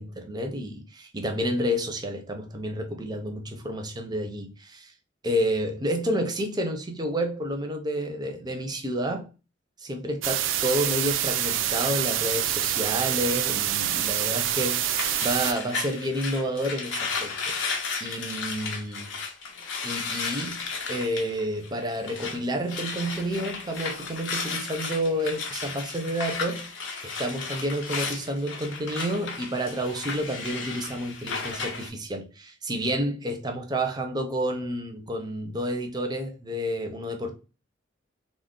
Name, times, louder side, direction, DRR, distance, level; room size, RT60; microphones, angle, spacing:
voice 1, 0.0-4.9 5.2-9.3 9.8-17.6 18.0-19.2 19.8-26.7 27.0-37.4, equal, 20° right, 0.5 m, -30 dB
sound 1, 10.2-15.5, right 11 dB, 75° right, 0.3 m, -26 dB
sound 2, 14.4-22.4 22.7-31.9, left 4 dB, 75° left, 0.7 m, -34 dB
2.3 x 2.1 x 3.6 m
head